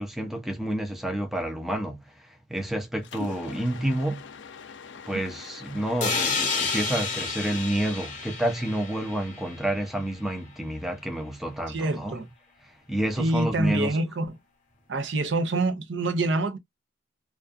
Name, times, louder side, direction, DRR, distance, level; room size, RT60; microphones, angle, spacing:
voice 1, 0.0-4.2 5.1-12.2 12.9-14.0, right 1 dB, ahead, 0.5 m, -29 dB
Mechanisms, 3.0-8.1, left 5 dB, 60° left, 0.4 m, -44 dB
sound 1, 6.0-9.8, left 4 dB, 40° left, 0.7 m, -30 dB
voice 2, 11.7-12.3 13.2-14.3 14.9-16.6, right 2 dB, 65° right, 0.5 m, -26 dB
2.4 x 2.2 x 2.4 m
head